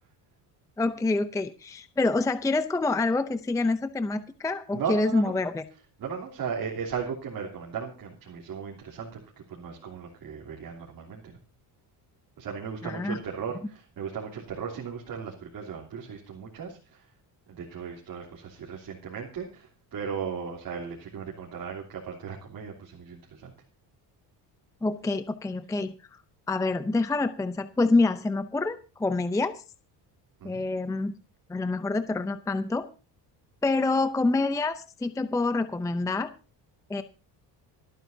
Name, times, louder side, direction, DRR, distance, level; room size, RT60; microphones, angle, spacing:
voice 1, 0.8-5.6 12.8-13.2 24.8-25.9 26.5-29.6 30.4-31.1 31.5-32.9 33.6-36.3 36.9-37.0, left 3 dB, 10° left, 11 dB, 0.5 m, -27 dB
voice 2, 4.7-5.3 6.0-9.2 9.5-11.4 12.4-17.1 17.5-23.5 30.4-30.6, right 6 dB, 55° right, -2 dB, 3.2 m, -36 dB
27.0 x 9.1 x 2.7 m, 0.34 s
cardioid pair, 130°, 43 cm